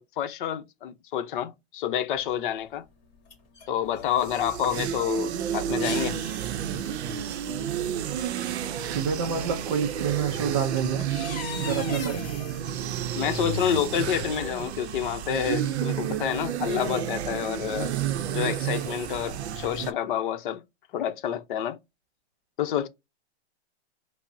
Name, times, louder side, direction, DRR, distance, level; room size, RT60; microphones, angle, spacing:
voice 1, 0.0-2.8 3.7-6.2 13.2-17.9 18.3-20.6 20.9-21.8 22.6-22.9, left 10 dB, 50° left, 0.7 m, -28 dB
sound 1, 2.2-2.3 3.0-4.1 4.4-4.5 5.2-5.3 5.7-6.4 7.8-7.9 8.5-8.9 10.2-10.3 10.6-12.7, left 6 dB, 25° left, 1.7 m, -39 dB
sound 2, 4.0-19.9, right 9 dB, 80° right, 0.6 m, -31 dB
voice 2, 8.9-11.1 11.6-12.3, right 6 dB, 25° right, 0.4 m, -28 dB
5.1 x 2.0 x 2.6 m
hypercardioid pair, 155°, 33 cm